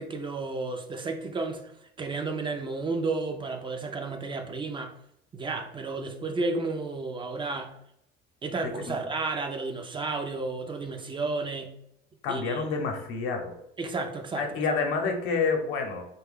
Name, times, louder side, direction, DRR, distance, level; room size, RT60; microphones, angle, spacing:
voice 1, 0.0-1.7 2.0-4.9 5.3-7.8 8.4-11.8 12.3-12.6 13.8-14.5, right 3 dB, 25° right, 0.4 m, -32 dB
voice 2, 8.6-9.0 12.2-13.5 14.4-16.1, left 4 dB, 80° left, 0.8 m, -28 dB
3.3 x 2.2 x 3.5 m
cardioid pair, 115°, 20 cm